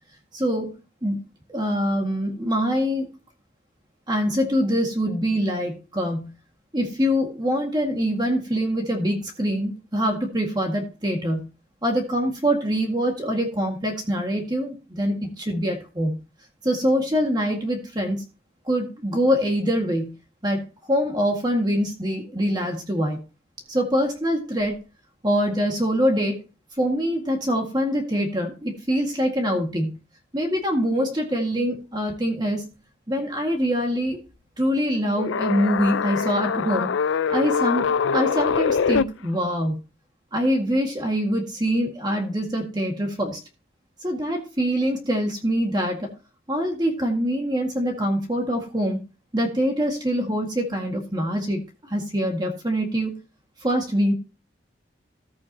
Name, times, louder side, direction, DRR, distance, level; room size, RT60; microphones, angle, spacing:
voice 1, 0.3-0.7 1.0-1.2 1.5-3.1 4.1-6.3 6.7-11.5 11.8-16.2 16.6-18.2 18.7-20.2 20.4-20.6 20.9-23.2 23.7-24.8 25.2-26.4 26.8-30.0 30.3-32.7 33.1-34.2 34.6-36.9 37.3-39.8 40.3-43.4 44.0-46.1 46.5-49.0 49.3-53.1 53.6-54.1, equal, 20° right, 2 dB, 1.9 m, -24 dB
sound 1, 35.2-39.0, left 6 dB, 75° left, 0.4 m, -23 dB
14.5 x 8.5 x 2.9 m, 0.31 s
head